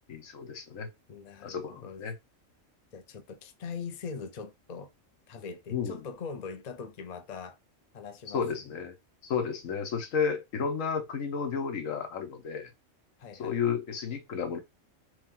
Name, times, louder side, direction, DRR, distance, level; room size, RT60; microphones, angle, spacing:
voice 1, 0.1-0.9 1.4-2.1 5.7-6.0 8.3-8.9 9.2-12.7 13.4-14.6, left 6 dB, 75° left, 1.3 m, -32 dB
voice 2, 1.1-2.0 2.9-4.9 5.3-7.6 7.9-8.7 13.2-13.7, left 5 dB, 50° left, 0.5 m, -42 dB
3.4 x 3.1 x 3.7 m
omnidirectional pair, 1.4 m